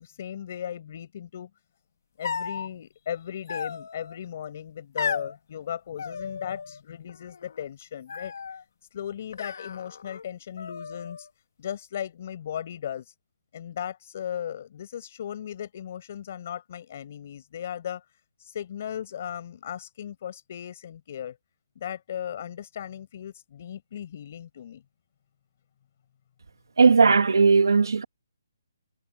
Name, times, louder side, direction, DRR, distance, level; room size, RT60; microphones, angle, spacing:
voice 1, 0.0-1.5 2.2-8.3 8.9-11.3 11.6-13.1 13.5-18.0 18.4-21.4 21.8-24.8, left 9 dB, 30° left, 5.9 m, -37 dB
sound 1, 2.2-2.7 3.5-4.2 5.0-5.3 6.0-6.8 7.1-7.6 8.1-8.6 9.3-10.2 10.6-11.3, left 6 dB, 50° left, 2.6 m, -35 dB
voice 2, 26.8-28.0, right 4 dB, 80° right, 2.4 m, -17 dB
hypercardioid pair, 175°, 2 cm